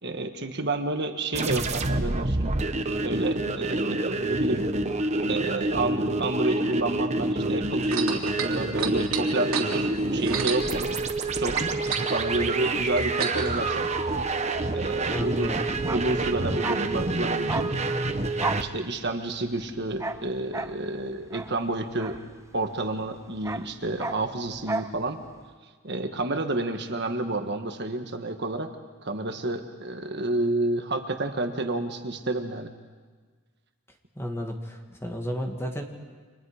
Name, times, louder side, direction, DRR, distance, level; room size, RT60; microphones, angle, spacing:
voice 1, 0.0-2.5 3.0-4.6 5.3-10.9 11.4-11.6 12.1-13.9 14.7-15.6 15.9-17.7 18.4-22.2 22.5-25.2 25.8-28.7 29.0-32.7, right 2 dB, 50° right, 6 dB, 1.5 m, -30 dB
sound 1, 1.3-18.6, right 2 dB, 30° right, 1.1 m, -27 dB
sound 2, 7.8-11.3 11.5-13.6 14.4-14.5, right 7 dB, 85° right, 3.4 m, -31 dB
voice 2, 15.1-15.6 34.2-35.8, equal, 10° left, 3 dB, 2.1 m, -32 dB
Bark, 15.8-22.8 23.1-25.0 25.2-25.4, right 2 dB, 15° right, 0.6 m, -35 dB
30.0 x 26.0 x 5.0 m, 1.5 s
head